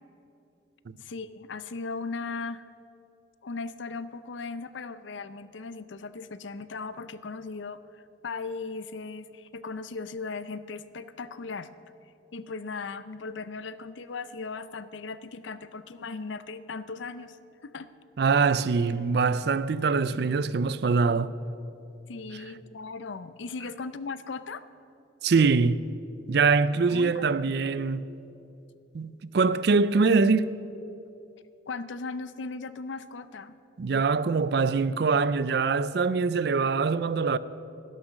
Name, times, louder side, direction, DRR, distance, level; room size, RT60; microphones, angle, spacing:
voice 1, 1.0-2.6 3.4-11.7 12.3-17.4 17.6-17.9 22.1-24.6 26.9-27.2 31.7-33.6, left 4 dB, 80° left, 0.6 m, -37 dB
voice 2, 18.2-21.3 25.2-25.8 26.3-28.1 28.9-30.5 33.8-37.4, right 4 dB, 60° right, 0.4 m, -23 dB
12.0 x 11.5 x 6.3 m
head